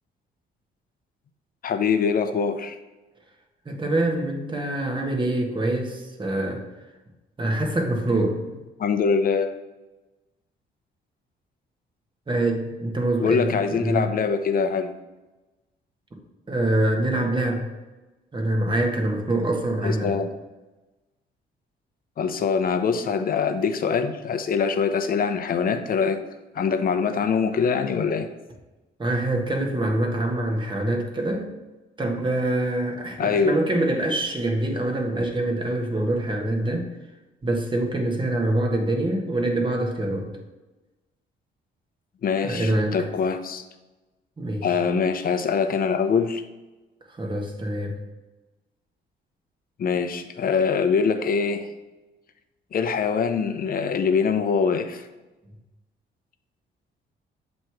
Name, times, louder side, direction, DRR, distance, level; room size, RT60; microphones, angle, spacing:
voice 1, 1.6-2.7 8.8-9.6 13.2-14.9 19.8-20.3 22.2-26.2 26.5-28.3 33.2-33.6 42.2-43.6 44.6-46.4 49.8-51.7 52.7-55.1, left 5 dB, 45° left, 7 dB, 0.7 m, -23 dB
voice 2, 3.6-6.7 7.4-8.4 12.3-14.1 16.5-17.7 18.3-20.2 29.0-31.5 32.0-36.9 37.4-40.3 42.4-42.9 44.4-44.7 47.2-48.0, right 1 dB, 25° right, 2 dB, 1.3 m, -25 dB
7.5 x 3.1 x 4.6 m, 1.1 s
cardioid pair, 90°, 20 cm